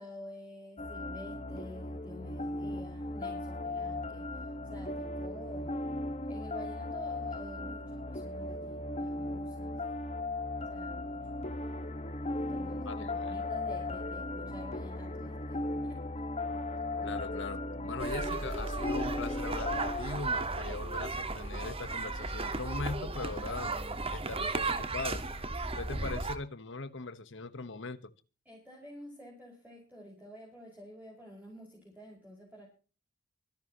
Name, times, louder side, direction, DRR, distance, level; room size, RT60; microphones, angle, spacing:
voice 1, 0.0-5.8 6.2-9.8 10.7-11.2 12.3-16.3 28.5-32.7, equal, 10° right, -3 dB, 5.4 m, -49 dB
sound 1, 0.8-20.0, left 2 dB, 30° left, 1.5 m, -37 dB
voice 2, 12.9-13.4 16.5-16.6 17.0-23.7 24.1-25.2 25.8-28.1, left 3 dB, 60° left, 13 dB, 1.2 m, -40 dB
sound 2, 18.0-26.4, right 2 dB, 30° right, 1.6 m, -35 dB
24.5 x 10.5 x 3.0 m, 0.35 s
head